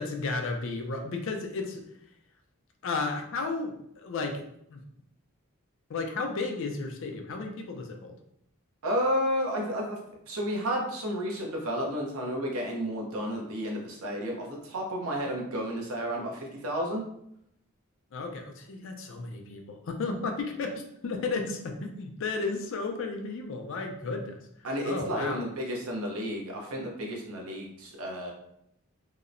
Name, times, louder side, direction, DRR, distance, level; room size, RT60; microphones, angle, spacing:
voice 1, 0.0-1.8 2.8-4.4 4.7-4.8 5.9-8.2 18.1-24.4 24.8-25.4, left 3 dB, 60° left, 4 dB, 0.4 m, -33 dB
voice 2, 8.8-10.0 10.3-17.0 24.6-28.3, equal, 75° right, 0 dB, 0.7 m, -31 dB
2.8 x 2.0 x 2.5 m, 0.74 s
head